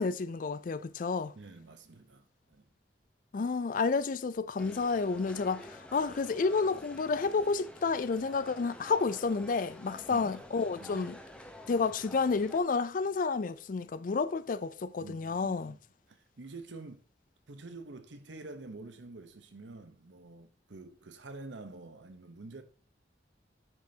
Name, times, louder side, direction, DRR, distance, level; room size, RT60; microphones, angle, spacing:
voice 1, 0.0-1.3 3.3-11.2 11.7-15.7, left 4 dB, 50° left, 0.4 m, -30 dB
voice 2, 1.3-2.7 10.1-10.4 10.8-11.1 15.0-15.8 16.1-17.0 17.5-22.6, right 3 dB, 85° right, 0.9 m, -48 dB
sound 1, 4.6-12.6, left 1 dB, 5° left, 0.8 m, -50 dB
9.5 x 5.4 x 2.8 m
head